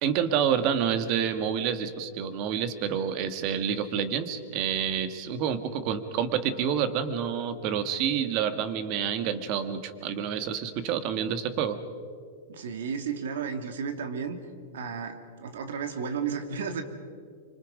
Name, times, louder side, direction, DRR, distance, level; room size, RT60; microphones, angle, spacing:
voice 1, 0.0-11.8, right 8 dB, 40° right, 10 dB, 1.5 m, -28 dB
voice 2, 12.5-14.4 14.7-16.8, right 6 dB, 80° right, 7 dB, 2.2 m, -33 dB
25.5 x 25.0 x 5.0 m, 2.2 s
supercardioid pair, 150°, 0 cm